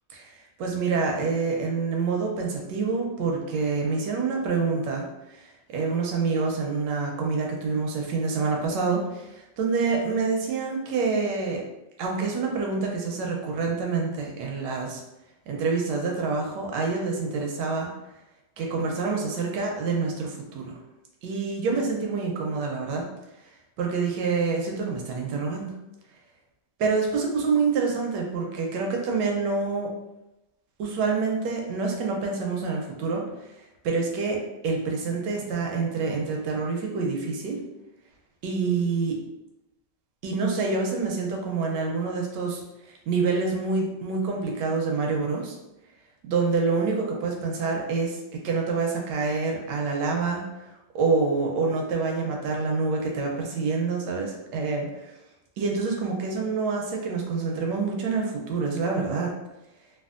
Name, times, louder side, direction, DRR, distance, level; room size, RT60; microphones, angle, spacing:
voice 1, 0.6-5.1 5.3-5.5 5.7-11.6 12.0-15.0 15.5-17.9 18.6-20.7 21.2-23.1 23.8-25.7 26.8-29.9 30.8-33.3 33.8-37.6 38.4-39.2 40.2-42.6 42.9-45.5 46.2-50.4 50.9-55.1 55.6-59.3, right 4 dB, 75° right, 0 dB, 1.0 m, -27 dB
3.4 x 2.3 x 2.4 m, 0.94 s
omnidirectional pair, 2.3 m